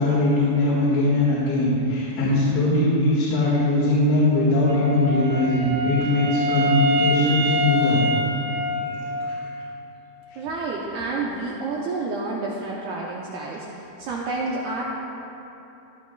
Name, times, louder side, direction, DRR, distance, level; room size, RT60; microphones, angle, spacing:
voice 1, 0.0-8.0 9.2-9.4, left 2 dB, 85° left, -9 dB, 4.5 m, -21 dB
Wind instrument woodwind instrument, 4.7-9.4, equal, 40° right, 2.9 m, -25 dB
voice 2, 10.4-14.8, right 3 dB, 80° right, -4 dB, 2.3 m, -29 dB
18.5 x 11.0 x 2.3 m, 3.0 s
omnidirectional pair, 5.4 m